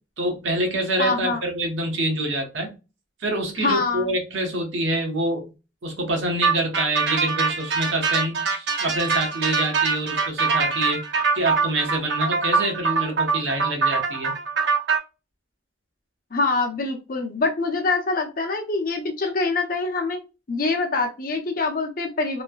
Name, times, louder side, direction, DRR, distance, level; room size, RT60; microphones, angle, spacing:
voice 1, 0.2-2.7 3.2-5.5 5.8-11.0 11.3-14.3, right 1 dB, 85° right, 1.0 m, -26 dB
voice 2, 1.0-1.4 3.6-4.1 16.3-20.2 20.5-22.4, left 3 dB, 50° left, 0.7 m, -24 dB
sound 1, 6.4-15.0, right 5 dB, 65° right, 0.5 m, -23 dB
3.1 x 2.1 x 2.2 m
head